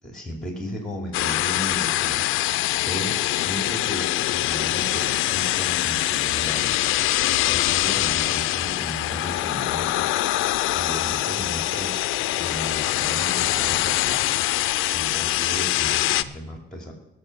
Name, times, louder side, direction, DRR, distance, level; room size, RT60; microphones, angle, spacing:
voice 1, 0.0-2.4 2.8-6.8 7.4-10.1 10.7-11.9 12.4-14.3 14.9-16.9, equal, ahead, 2 dB, 2.7 m, -35 dB
sound 1, 1.1-16.2, left 16 dB, 90° left, 0.4 m, -24 dB
17.5 x 6.7 x 6.0 m, 0.91 s
cardioid pair, 90°, 20 cm